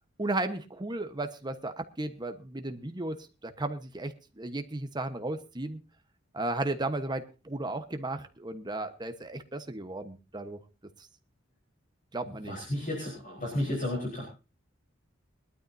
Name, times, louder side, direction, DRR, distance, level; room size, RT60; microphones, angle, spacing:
voice 1, 0.2-5.8 6.3-10.6 12.1-12.5 13.7-13.8, right 2 dB, 20° right, 8 dB, 1.2 m, -35 dB
voice 2, 12.4-14.2, left 1 dB, 45° left, -1 dB, 4.2 m, -32 dB
21.5 x 12.5 x 2.7 m, 0.29 s
head